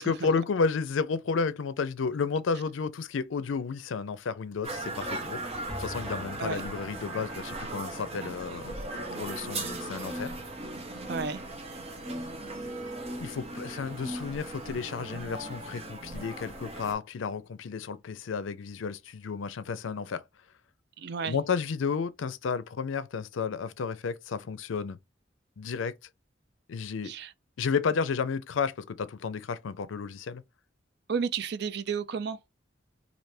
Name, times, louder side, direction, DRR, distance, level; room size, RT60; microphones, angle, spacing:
voice 1, 0.0-5.4 5.8-10.4 13.2-20.2 21.2-25.0 25.6-25.9 26.7-27.1 27.6-30.4, left 5 dB, 85° left, 0.4 m, -32 dB
sound 1, 4.6-16.9, right 2 dB, 30° right, 0.8 m, -38 dB
sound 2, 5.7-12.1 12.4-12.5 12.8-12.9, left 1 dB, 5° left, 0.7 m, -48 dB
voice 2, 11.1-11.4 21.0-21.4 27.0-27.3 31.1-32.4, right 6 dB, 55° right, 0.4 m, -32 dB
3.3 x 2.6 x 2.6 m
head